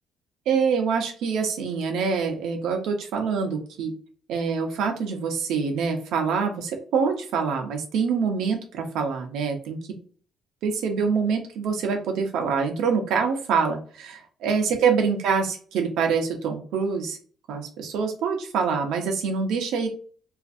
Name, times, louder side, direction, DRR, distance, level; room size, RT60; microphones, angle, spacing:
voice 1, 0.5-3.9 4.3-9.8 10.6-17.2 17.5-19.9, right 5 dB, 75° right, 3 dB, 0.6 m, -25 dB
2.5 x 2.4 x 2.5 m, 0.42 s
cardioid pair, 175°, 0 cm